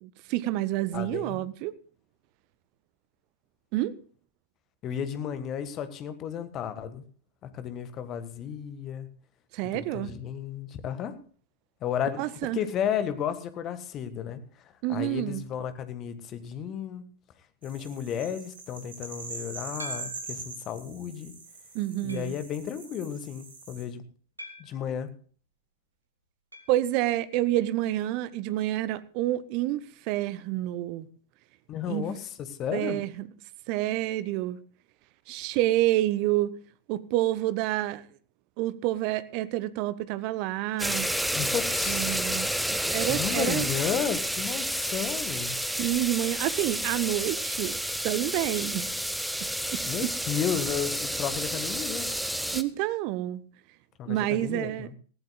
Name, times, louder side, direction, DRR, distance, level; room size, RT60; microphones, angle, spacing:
voice 1, 0.0-1.7 3.7-3.9 9.5-10.1 12.2-12.6 14.8-15.4 21.7-22.3 26.7-31.1 31.9-32.0 32.7-33.3 33.7-34.6 35.3-36.6 36.9-38.0 38.6-41.1 41.9-43.7 45.8-47.8 48.0-48.9 49.7-49.8 52.5-53.4 54.1-54.9, right 15 dB, 45° right, 0.7 m, -28 dB
voice 2, 0.9-1.4 4.8-7.0 7.4-9.1 9.7-11.2 11.8-14.4 14.9-17.0 17.6-21.3 22.0-24.0 24.6-25.1 31.7-33.0 41.3-42.1 43.0-45.5 49.8-52.1 54.0-54.9, left 8 dB, 35° left, 1.5 m, -33 dB
sound 1, 17.6-23.8, right 4 dB, 65° right, 4.1 m, -42 dB
sound 2, 19.8-20.5 21.1-21.2 22.1-22.5 24.4-24.9 26.5-26.8 27.1-27.2 27.4-27.5 29.5-29.6, equal, 85° right, 1.5 m, -44 dB
sound 3, 40.8-52.6, equal, ahead, 0.9 m, -30 dB
19.5 x 15.0 x 2.3 m
figure-of-eight pair, 90°, 0 cm